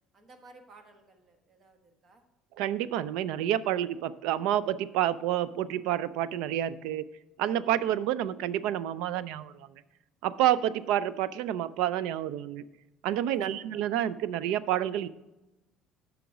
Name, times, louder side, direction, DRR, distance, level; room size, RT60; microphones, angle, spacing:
voice 1, 0.1-2.2 13.1-13.4, right 3 dB, 35° right, 5 dB, 1.3 m, -56 dB
voice 2, 2.6-7.0 7.4-9.8 10.2-12.6 13.0-15.1, right 11 dB, 80° right, 16 dB, 0.4 m, -29 dB
9.2 x 5.8 x 4.8 m, 1.0 s
cardioid pair, 130°, 0 cm